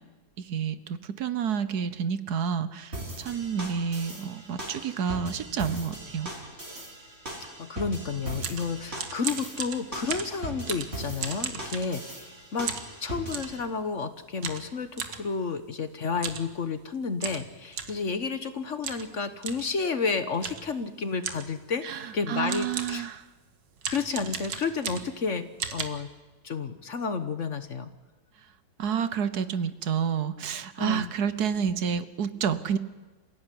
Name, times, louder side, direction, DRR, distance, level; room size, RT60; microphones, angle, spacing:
voice 1, 0.4-6.3 21.8-23.2 28.8-32.8, right 7 dB, 65° right, 14 dB, 1.4 m, -29 dB
sound 1, 2.9-13.6, right 1 dB, 35° right, 4.9 m, -40 dB
voice 2, 7.3-12.7 13.0-21.9 22.1-23.1 23.9-26.1 26.4-27.9 30.8-31.1, left 5 dB, 50° left, 10 dB, 1.3 m, -31 dB
sound 2, 8.1-12.3 12.7-13.6 14.4-15.2 16.1-16.5 16.8-16.9 17.2-18.0 18.8-19.1 19.4-19.7 20.4-20.7 21.2-21.6 22.2-22.3 22.5-23.1 23.8-25.2 25.6-25.8, right 6 dB, 85° right, 2.2 m, -35 dB
27.5 x 16.0 x 9.9 m, 1.3 s
omnidirectional pair, 1.9 m